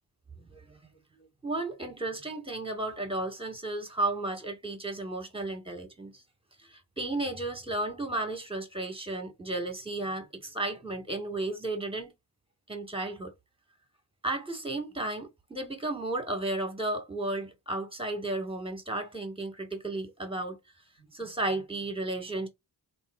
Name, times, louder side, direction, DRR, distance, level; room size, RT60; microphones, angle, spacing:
voice 1, 1.4-6.2 6.6-12.1 12.7-13.3 14.2-20.6 21.1-22.5, right 2 dB, 10° right, 1.4 m, -33 dB
3.0 x 2.8 x 2.3 m
cardioid pair, 50°, 47 cm